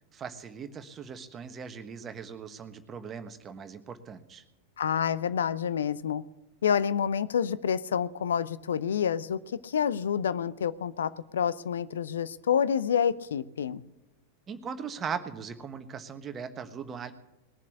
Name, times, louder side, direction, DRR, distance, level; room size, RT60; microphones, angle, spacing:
voice 1, 0.1-4.4 14.5-17.1, right 6 dB, 25° right, 9 dB, 1.3 m, -39 dB
voice 2, 4.8-6.2 6.6-13.8, left 8 dB, 65° left, 16 dB, 0.6 m, -28 dB
20.0 x 7.3 x 8.3 m, 0.94 s
figure-of-eight pair, 90°, 0 cm